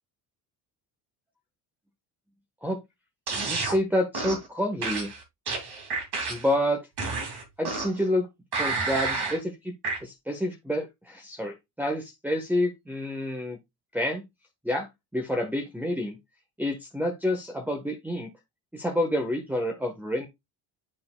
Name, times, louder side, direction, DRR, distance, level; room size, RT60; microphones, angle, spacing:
sound 1, 3.3-3.8 4.1-4.5 4.8-6.5 7.0-8.0 8.5-9.4 9.8-10.0, right 3 dB, 55° right, 2.7 m, -30 dB
voice 1, 3.5-5.1 6.3-6.8 7.6-8.3 8.5-9.7 10.0-13.6 13.9-14.2 14.6-16.2 16.6-18.3 18.7-20.3, left 1 dB, 5° right, 1.3 m, -28 dB
11.0 x 3.8 x 2.3 m
supercardioid pair, 80°, 46 cm